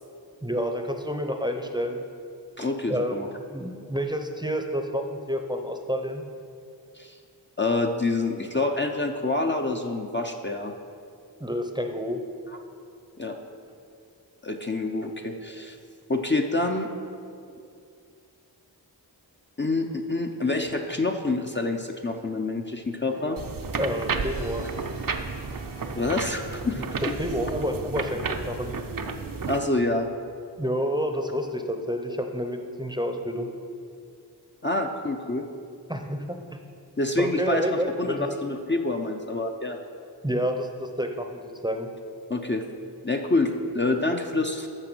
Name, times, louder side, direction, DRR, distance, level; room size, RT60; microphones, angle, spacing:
voice 1, 0.4-2.0 2.9-3.2 3.5-6.2 11.4-12.2 23.8-24.7 26.8-26.9 27.2-28.7 30.6-33.5 35.9-36.6 37.2-38.3 40.2-41.9, equal, 10° right, 4 dB, 0.7 m, -29 dB
voice 2, 2.6-3.3 6.9-7.2 7.6-10.7 13.2-13.4 14.4-15.8 16.1-16.9 19.6-23.4 26.0-27.0 29.5-30.1 34.6-35.5 37.0-39.8 42.3-42.7 43.0-44.7, left 2 dB, 25° left, 2 dB, 0.6 m, -27 dB
Brass instrument, 23.1-26.9, right 2 dB, 75° right, 1.1 m, -44 dB
sound 1, 23.4-29.6, right 4 dB, 55° right, 0.7 m, -32 dB
8.9 x 6.6 x 6.1 m, 2.4 s
wide cardioid pair, 60°, 41 cm